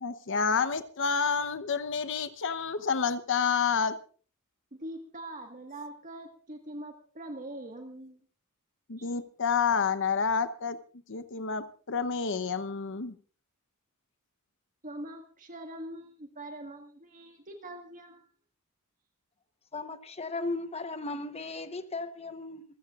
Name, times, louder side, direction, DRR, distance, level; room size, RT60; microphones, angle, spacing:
voice 1, 0.0-4.0 8.9-10.8 11.1-13.1, left 6 dB, 60° left, 0.9 m, -29 dB
voice 2, 4.7-8.2 9.0-9.1 14.8-18.3, right 1 dB, 35° right, 1.7 m, -43 dB
voice 3, 19.7-22.6, left 3 dB, 30° left, 1.0 m, -36 dB
26.5 x 15.0 x 2.5 m
head